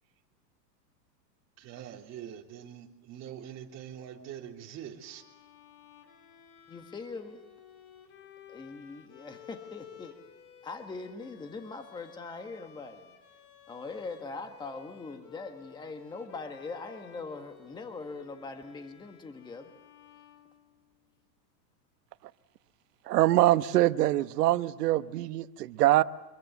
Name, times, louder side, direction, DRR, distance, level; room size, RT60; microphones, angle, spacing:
voice 1, 1.6-5.2, right 9 dB, 30° right, 0 dB, 3.4 m, -44 dB
Bowed string instrument, 5.0-21.1, left 10 dB, 35° left, 3.4 m, -55 dB
voice 2, 6.7-7.4 8.5-10.2 10.6-13.1 13.7-19.7, left 3 dB, 10° left, 6 dB, 1.5 m, -41 dB
voice 3, 23.1-26.0, right 15 dB, 65° right, 13 dB, 1.1 m, -24 dB
26.0 x 22.5 x 8.1 m, 1.2 s
supercardioid pair, 145°, 50 cm